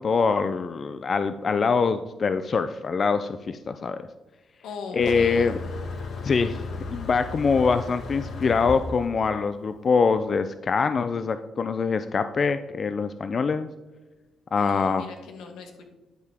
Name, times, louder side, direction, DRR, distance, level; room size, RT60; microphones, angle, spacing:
voice 1, 0.0-4.1 4.9-5.6 6.2-6.6 6.9-13.7 14.5-15.0, left 5 dB, 45° left, 10 dB, 0.3 m, -24 dB
voice 2, 4.6-5.5 14.5-15.9, left 5 dB, 85° left, 4 dB, 1.2 m, -39 dB
Motor vehicle (road), 5.0-10.2, left 3 dB, 60° left, 1.2 m, -35 dB
11.0 x 4.8 x 3.5 m, 1.2 s
cardioid pair, 90°, 0 cm